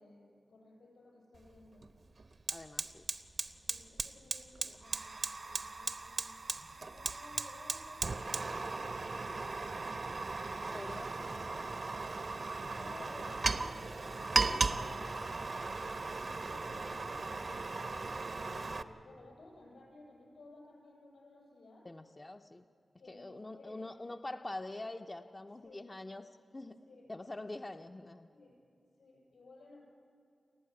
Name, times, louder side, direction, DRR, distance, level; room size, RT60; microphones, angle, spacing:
voice 1, 0.0-1.9 3.6-5.2 5.4-6.4 6.7-10.4 11.3-11.9 12.3-15.5 16.1-21.9 23.0-24.0 25.4-25.9 26.6-27.1 27.4-27.5 28.3-28.6 29.0-29.8, left 2 dB, 80° left, -1 dB, 7.2 m, -57 dB
Fire, 1.3-1.5 1.8-18.8, right 3 dB, 50° right, 0.9 m, -37 dB
voice 2, 2.5-3.0 10.7-11.5 21.8-22.6 23.1-26.8 27.1-28.3, left 2 dB, 25° left, 5 dB, 0.6 m, -45 dB
29.5 x 12.0 x 9.6 m, 2.5 s
wide cardioid pair, 110°, 0 cm